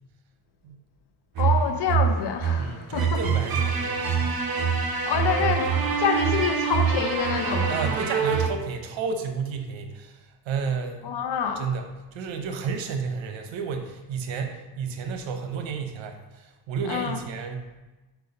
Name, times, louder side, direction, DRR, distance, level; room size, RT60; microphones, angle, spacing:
sound 1, 1.3-8.5, right 6 dB, 50° right, 0.9 m, -25 dB
voice 1, 1.4-3.2 5.1-7.8 11.0-11.7 16.9-17.2, left 7 dB, 60° left, 0.8 m, -27 dB
voice 2, 2.6-4.3 7.7-11.1 11.6-17.8, right 5 dB, 80° right, 1.0 m, -32 dB
4.7 x 4.6 x 5.3 m
cardioid pair, 110°, 45 cm